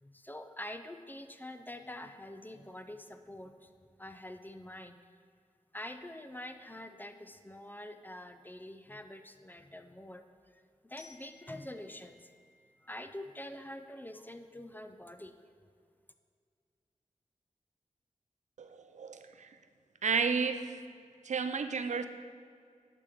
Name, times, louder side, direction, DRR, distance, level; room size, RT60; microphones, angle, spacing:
voice 1, 0.0-3.7 4.0-5.1 5.7-10.2 10.5-12.3 12.8-15.3, left 1 dB, 15° left, 8 dB, 0.4 m, -46 dB
Glockenspiel, 11.0-13.8, left 3 dB, 45° right, 1.8 m, -60 dB
voice 2, 18.6-19.5 20.0-20.8 21.2-22.1, right 5 dB, 65° right, 9 dB, 0.4 m, -32 dB
11.0 x 5.0 x 3.6 m, 2.2 s
wide cardioid pair, 75°, 13 cm